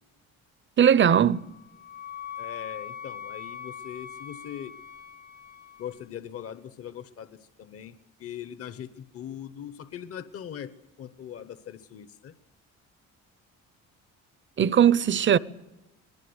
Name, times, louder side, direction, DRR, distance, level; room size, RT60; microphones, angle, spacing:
voice 1, 0.8-1.5 14.6-15.4, right 9 dB, 40° right, 0.8 m, -19 dB
Wind instrument woodwind instrument, 1.2-6.0, left 8 dB, 30° left, 0.8 m, -42 dB
voice 2, 2.4-4.7 5.8-10.7 11.0-12.3, left 9 dB, 50° left, 1.1 m, -40 dB
24.0 x 20.0 x 8.0 m
cardioid pair, 115°, 31 cm